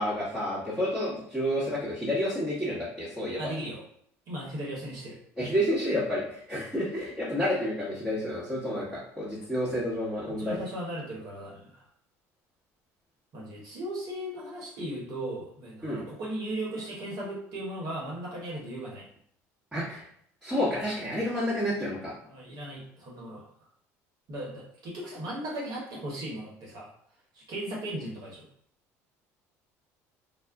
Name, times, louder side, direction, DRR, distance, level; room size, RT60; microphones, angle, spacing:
voice 1, 0.0-3.5 5.4-10.6 15.8-16.0 19.7-20.0 20.4-22.1, equal, 10° right, -9 dB, 1.0 m, -30 dB
voice 2, 3.4-3.8 4.3-5.2 6.5-6.7 10.4-11.8 13.3-19.0 22.2-23.4 24.3-26.9 27.3-28.4, right 1 dB, 60° right, -3 dB, 0.9 m, -37 dB
2.3 x 2.0 x 3.5 m, 0.65 s
supercardioid pair, 95°, 7 cm